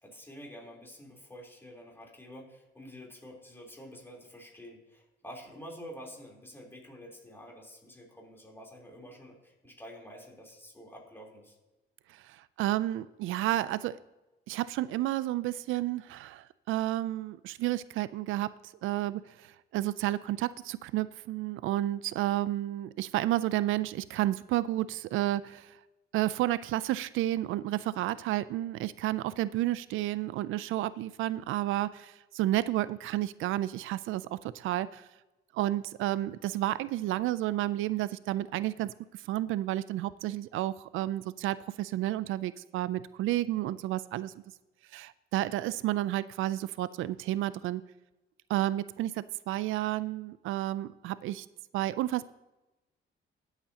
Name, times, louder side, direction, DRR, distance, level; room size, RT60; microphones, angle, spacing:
voice 1, 0.0-11.6, equal, 10° left, -1 dB, 3.5 m, -48 dB
voice 2, 12.1-14.0 14.5-18.5 18.8-25.8 26.1-35.1 35.5-44.3 44.9-47.8 48.5-51.5 51.7-52.3, right 14 dB, 85° right, 17 dB, 0.4 m, -31 dB
18.0 x 8.2 x 2.9 m, 1.0 s
cardioid pair, 90°, 20 cm